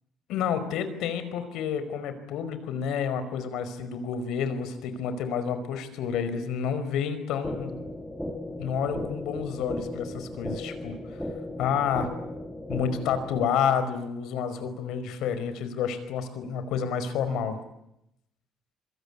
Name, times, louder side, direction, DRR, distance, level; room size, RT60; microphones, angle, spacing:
voice 1, 0.3-7.7 8.6-10.9 11.6-12.1 12.7-17.6, left 7 dB, 75° left, 11 dB, 5.0 m, -29 dB
sound 1, 7.4-13.4, left 1 dB, 5° left, 2.8 m, -36 dB
26.0 x 25.0 x 8.6 m, 0.81 s
cardioid pair, 170°, 0 cm